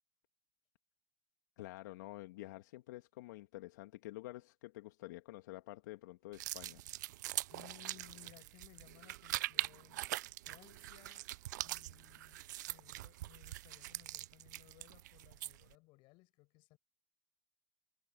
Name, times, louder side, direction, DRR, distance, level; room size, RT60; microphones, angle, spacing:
voice 1, 1.6-6.8, left 18 dB, 75° left, 1.6 m, -49 dB
sound 1, 6.3-15.7, right 16 dB, 80° right, 0.4 m, -43 dB
voice 2, 7.5-10.1 10.4-11.3 11.6-16.8, left 23 dB, 60° left, 5.4 m, -62 dB
hypercardioid pair, 100°, 10 cm